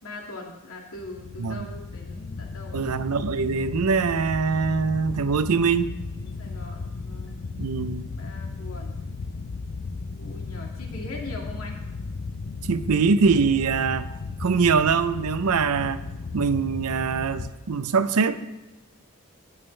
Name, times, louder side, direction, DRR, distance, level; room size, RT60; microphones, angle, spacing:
voice 1, 0.0-2.9 6.2-7.4 8.2-9.0 10.1-11.8, left 2 dB, 75° left, 2.2 m, -41 dB
sound 1, 0.9-17.5, left 4 dB, 50° left, 0.4 m, -35 dB
voice 2, 2.7-5.9 7.6-8.1 12.7-14.1 14.4-16.0 16.3-18.4, right 5 dB, 85° right, 0.6 m, -23 dB
17.0 x 7.3 x 3.3 m
head